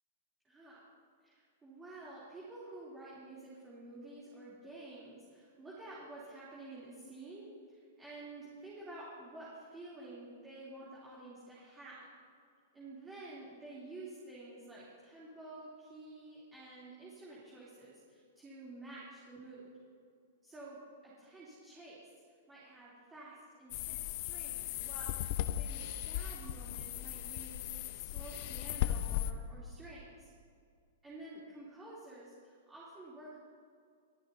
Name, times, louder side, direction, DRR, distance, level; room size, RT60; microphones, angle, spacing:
voice 1, 0.4-0.8 1.2-12.1 12.7-19.7 20.4-20.8 21.0-22.1 22.5-27.7 27.9-30.3 31.0-33.4, right 2 dB, 10° right, -8 dB, 3.3 m, -50 dB
sound 1, 23.7-29.3, left 12 dB, 50° left, 0.7 m, -37 dB
23.5 x 14.0 x 2.8 m, 2.2 s
hypercardioid pair, 150°, 0 cm